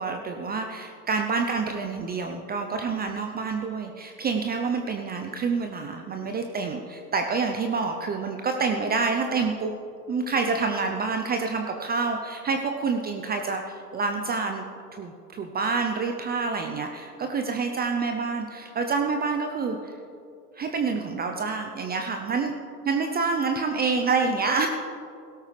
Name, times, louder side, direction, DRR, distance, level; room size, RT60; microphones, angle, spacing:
voice 1, 0.0-9.7 10.1-14.7 14.9-20.0 20.5-22.5 22.8-24.7, right 4 dB, 20° right, 4 dB, 0.6 m, -27 dB
17.0 x 13.0 x 3.3 m, 2.6 s
hypercardioid pair, 95°, 49 cm